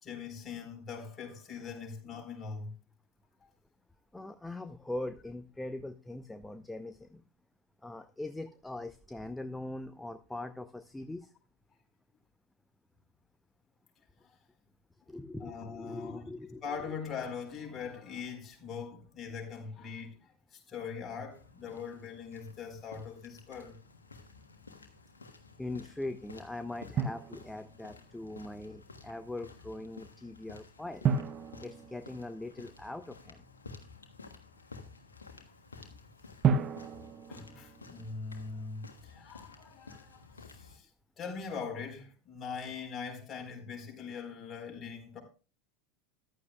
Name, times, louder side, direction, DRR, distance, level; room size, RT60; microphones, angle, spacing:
voice 1, 0.0-2.7 14.2-14.3 15.4-16.2 16.6-23.8 35.8-36.0 37.3-40.9 41.2-45.2, left 5 dB, 25° left, 4.2 m, -42 dB
voice 2, 4.1-7.2 7.8-11.3 15.1-16.6 16.9-17.0 25.6-31.1 31.6-33.4, left 2 dB, 5° left, 0.6 m, -41 dB
sound 1, 21.3-40.8, left 4 dB, 75° left, 1.4 m, -53 dB
Drum, 27.0-28.0 31.0-32.9 36.4-38.4, right 6 dB, 30° right, 0.8 m, -33 dB
14.5 x 11.5 x 2.3 m
figure-of-eight pair, 80°, 0 cm